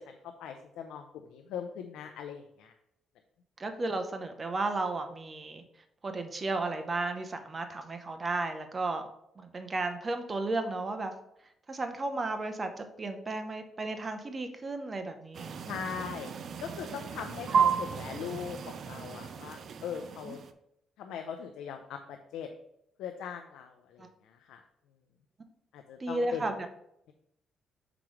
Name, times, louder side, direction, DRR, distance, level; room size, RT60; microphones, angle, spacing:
voice 1, 0.0-2.7 15.7-16.3 16.6-20.4 21.0-22.5 23.0-24.6 25.7-26.4, left 8 dB, 85° left, 5 dB, 0.5 m, -40 dB
voice 2, 3.6-5.6 6.0-9.1 9.4-11.1 11.7-15.5 17.5-17.7 20.2-20.4 24.0-24.1 26.0-26.5, right 2 dB, 30° right, 7 dB, 0.8 m, -34 dB
sound 1, 15.3-20.5, right 6 dB, 60° right, 0.5 m, -33 dB
6.0 x 4.9 x 3.2 m, 0.78 s
cardioid pair, 90°, 0 cm